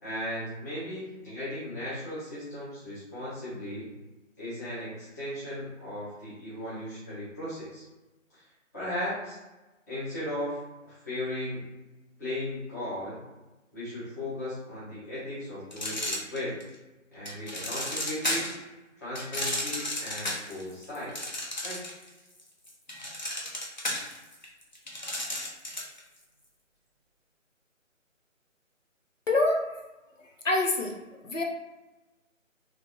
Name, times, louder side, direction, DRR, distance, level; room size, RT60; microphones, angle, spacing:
voice 1, 0.0-3.9 4.4-7.8 8.3-8.4 8.7-9.4 9.9-10.6 10.8-11.6 12.2-13.2 13.7-16.6 17.1-18.5 19.0-21.1 21.6-21.8, left 1 dB, 15° left, -12 dB, 1.0 m, -36 dB
sound 1, 15.7-16.7 17.3-18.6 19.1-22.1 22.4-26.0, left 1 dB, 35° left, 0.5 m, -33 dB
voice 2, 29.3-29.7 30.2-31.0 31.2-31.4, left 2 dB, 75° left, 1 dB, 0.8 m, -26 dB
3.2 x 3.2 x 3.0 m, 1.1 s
figure-of-eight pair, 155°, 39 cm